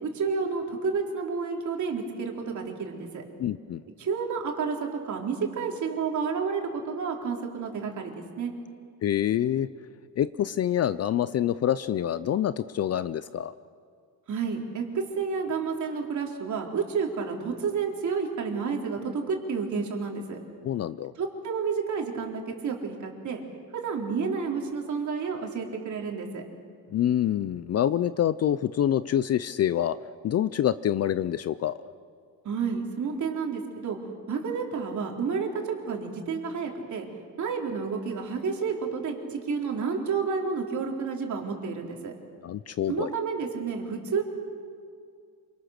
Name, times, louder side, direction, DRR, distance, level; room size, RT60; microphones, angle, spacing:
voice 1, 0.0-3.2 4.0-8.1 8.4-8.5 14.3-20.4 21.2-23.4 23.7-26.4 32.4-34.0 34.3-37.1 37.4-42.1 42.9-44.2, right 5 dB, 45° right, 1 dB, 3.9 m, -30 dB
voice 2, 3.4-3.8 9.0-9.7 10.2-13.5 20.6-21.1 26.9-30.0 30.2-31.8 42.4-43.1, left 10 dB, 40° left, 15 dB, 0.5 m, -26 dB
27.5 x 25.0 x 6.6 m, 2.2 s
cardioid pair, 135°, 41 cm